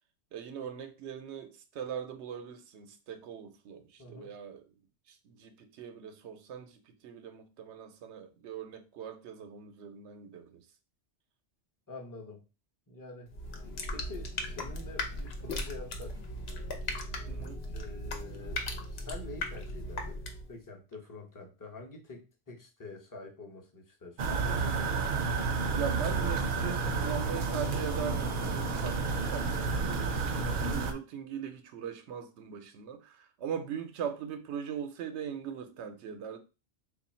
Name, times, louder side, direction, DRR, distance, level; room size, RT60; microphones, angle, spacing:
voice 1, 0.3-4.6 5.1-10.7 17.3-17.6 25.7-36.4, right 8 dB, 90° right, 0.9 m, -40 dB
voice 2, 4.0-4.3 11.9-12.4 12.9-13.3 13.9-16.2 17.7-18.6 18.9-24.9, left 3 dB, 20° left, 0.7 m, -47 dB
sound 1, 13.3-20.5, left 1 dB, 70° left, 0.9 m, -38 dB
sound 2, 24.2-30.9, right 4 dB, 55° right, 0.7 m, -30 dB
3.1 x 2.4 x 4.2 m
omnidirectional pair, 1.1 m